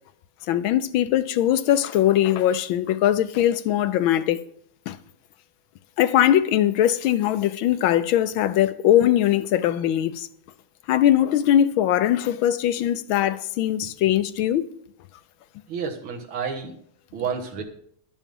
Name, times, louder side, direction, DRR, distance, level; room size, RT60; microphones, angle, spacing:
voice 1, 0.5-4.4 4.9-5.0 6.0-10.3 10.9-14.7, left 11 dB, 80° left, 1.4 m, -21 dB
voice 2, 15.7-16.8 17.1-17.6, right 6 dB, 90° right, 2.3 m, -30 dB
12.0 x 7.2 x 5.4 m
omnidirectional pair, 2.2 m